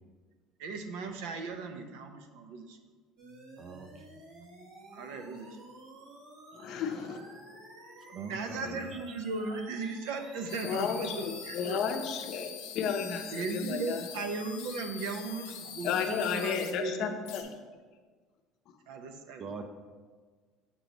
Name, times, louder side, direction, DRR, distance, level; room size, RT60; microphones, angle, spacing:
voice 1, 0.6-2.8 4.9-5.6 8.1-11.8 13.3-17.1 17.4-17.5 18.9-19.4, right 3 dB, 80° right, 6 dB, 0.6 m, -37 dB
sound 1, 3.2-11.6, right 2 dB, 65° right, 1.5 m, -52 dB
voice 2, 3.6-4.0 8.1-9.0 19.4-19.7, right 4 dB, 35° right, 7 dB, 0.4 m, -44 dB
voice 3, 6.5-7.6 8.6-8.8 10.6-12.5 12.7-14.0 15.8-17.5, left 7 dB, 55° left, 6 dB, 0.6 m, -33 dB
sound 2, 10.5-16.7 17.2-17.4, left 8 dB, 90° left, 0.8 m, -44 dB
6.8 x 3.0 x 5.1 m, 1.5 s
cardioid pair, 145°, 0 cm